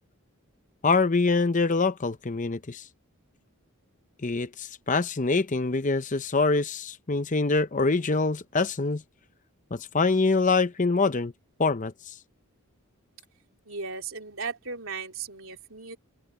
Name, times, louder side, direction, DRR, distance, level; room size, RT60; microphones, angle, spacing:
voice 1, 0.8-2.8 4.2-9.0 9.7-11.3 11.6-12.1, left 3 dB, 35° left, 0.7 m, -25 dB
voice 2, 13.7-16.0, right 4 dB, 65° right, 3.6 m, -36 dB
open air
head